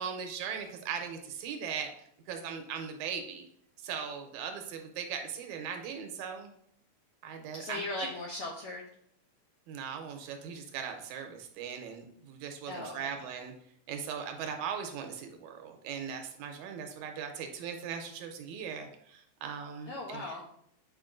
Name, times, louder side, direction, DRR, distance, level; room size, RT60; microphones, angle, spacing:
voice 1, 0.0-1.9 2.3-3.5 3.8-6.5 7.2-8.1 9.7-13.5 13.9-20.2, right 7 dB, 80° right, 5 dB, 2.1 m, -39 dB
voice 2, 7.5-8.8 12.7-13.1 19.9-20.4, left 2 dB, 80° left, -1 dB, 1.3 m, -38 dB
8.0 x 4.8 x 2.5 m, 0.68 s
omnidirectional pair, 3.5 m